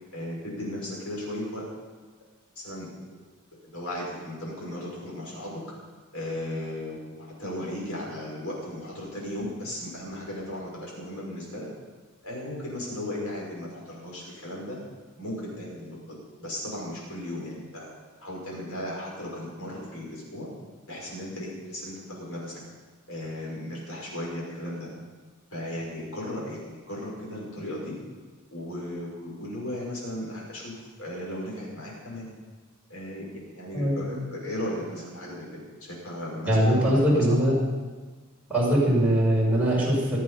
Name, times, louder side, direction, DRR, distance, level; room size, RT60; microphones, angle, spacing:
voice 1, 0.1-1.6 2.6-2.9 3.6-5.6 6.1-11.7 12.2-14.8 15.2-20.5 20.9-22.6 23.1-24.9 25.5-28.0 28.5-32.3 32.9-37.4, left 1 dB, 85° left, -4 dB, 6.0 m, -36 dB
voice 2, 36.5-37.5 38.5-40.2, equal, 5° right, -6 dB, 5.7 m, -21 dB
24.5 x 8.4 x 5.7 m, 1.4 s
head